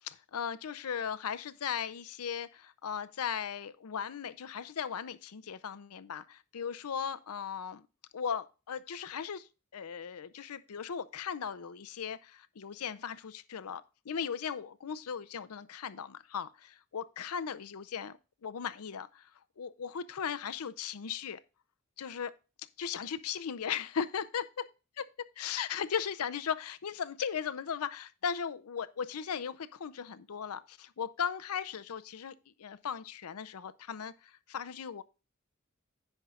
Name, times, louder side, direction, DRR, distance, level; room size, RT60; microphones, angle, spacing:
voice 1, 0.0-7.9 8.1-19.3 19.6-21.4 22.0-22.3 22.8-24.7 25.0-25.1 25.4-35.0, left 7 dB, 80° left, 0.5 m, -37 dB
15.5 x 5.5 x 2.4 m
head